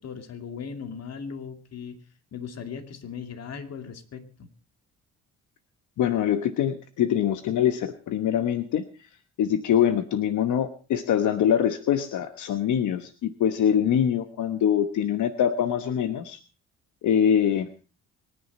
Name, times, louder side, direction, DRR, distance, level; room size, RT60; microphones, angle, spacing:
voice 1, 0.0-2.0 2.3-4.5, left 6 dB, 55° left, 7 dB, 2.4 m, -38 dB
voice 2, 6.0-8.9 9.4-16.4 17.0-17.7, left 9 dB, 75° left, 9 dB, 1.2 m, -24 dB
24.5 x 10.0 x 4.2 m, 0.36 s
cardioid pair, 90°, 30 cm